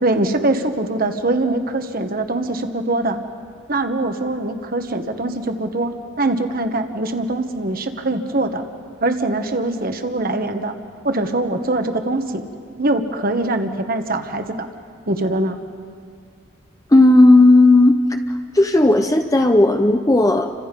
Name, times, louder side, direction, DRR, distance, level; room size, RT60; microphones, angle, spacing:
voice 1, 0.0-3.2 3.7-8.6 9.0-10.7 11.0-12.4 12.8-14.7 15.1-15.6, right 2 dB, 45° right, 7 dB, 1.4 m, -22 dB
voice 2, 16.9-18.0 18.5-20.5, left 2 dB, 15° left, 5 dB, 0.7 m, -13 dB
30.0 x 25.0 x 5.4 m, 2.2 s
head